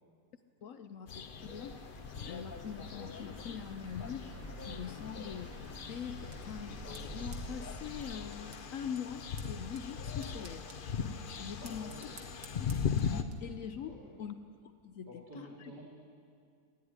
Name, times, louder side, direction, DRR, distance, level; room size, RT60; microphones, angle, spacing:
voice 1, 0.6-1.8 2.2-4.3 4.7-10.7 11.3-12.0 12.3-12.9 13.4-14.4 14.8-15.7, left 8 dB, 65° left, 9 dB, 0.8 m, -43 dB
sound 1, 1.1-13.2, left 6 dB, 80° left, 0.4 m, -40 dB
sound 2, 1.4-8.1, right 2 dB, 10° right, 1.4 m, -49 dB
sound 3, 5.6-13.4, right 4 dB, 45° right, 1.6 m, -58 dB
voice 2, 11.6-12.1 13.9-14.2 15.0-15.8, equal, 75° right, -5 dB, 3.1 m, -50 dB
15.5 x 9.6 x 9.6 m, 2.3 s
omnidirectional pair, 1.8 m